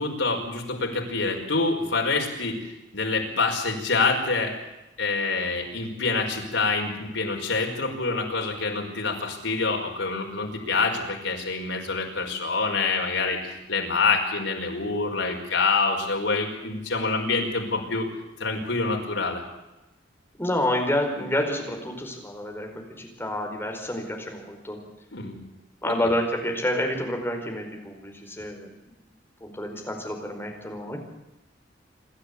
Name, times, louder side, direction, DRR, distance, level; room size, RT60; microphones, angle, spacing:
voice 1, 0.0-2.7 2.9-4.5 5.0-18.1 18.4-19.4 25.1-25.4 25.8-25.9, left 3 dB, 85° left, 2 dB, 5.0 m, -26 dB
voice 2, 20.4-24.8 25.8-29.0 29.4-31.0, left 1 dB, 10° left, 2 dB, 4.8 m, -29 dB
27.5 x 12.5 x 8.5 m, 0.97 s
head